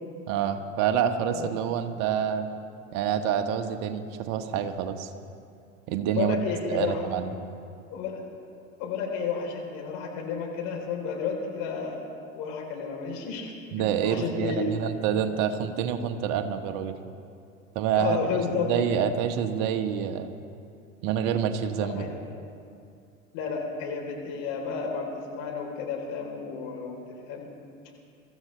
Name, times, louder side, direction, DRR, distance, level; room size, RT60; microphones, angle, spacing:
voice 1, 0.3-2.5 2.9-5.1 5.9-6.4 6.7-7.3 13.7-17.0 17.7-18.4 18.6-20.3 21.0-22.2, right 8 dB, 50° right, 7 dB, 1.4 m, -27 dB
voice 2, 6.1-7.0 7.9-8.2 8.8-12.0 12.3-13.5 13.8-14.7 17.9-19.0 21.8-22.1 23.3-26.9 27.3-27.6, left 5 dB, 55° left, 0 dB, 4.0 m, -31 dB
24.0 x 13.5 x 3.4 m, 2.4 s
hypercardioid pair, 80°, 39 cm